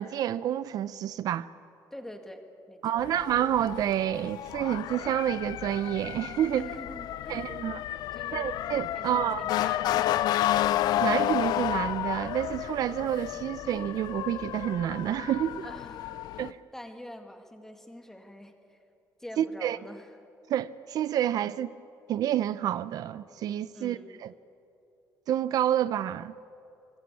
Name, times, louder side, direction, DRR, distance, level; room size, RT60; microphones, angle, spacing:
voice 1, 0.0-1.5 2.8-6.7 7.3-7.8 8.3-9.4 11.0-15.7 16.4-16.6 19.4-19.8 20.5-21.7 22.1-24.3 25.3-26.3, right 11 dB, 65° right, 0.5 m, -29 dB
voice 2, 1.9-3.0 6.6-7.8 8.1-8.5 8.9-10.3 15.6-16.5 16.7-18.8 19.2-20.1 23.7-24.2, left 1 dB, 5° left, 2.1 m, -46 dB
Motor vehicle (road) / Siren, 3.0-16.5, left 13 dB, 75° left, 0.5 m, -31 dB
25.5 x 19.5 x 8.3 m
cardioid pair, 135°, 7 cm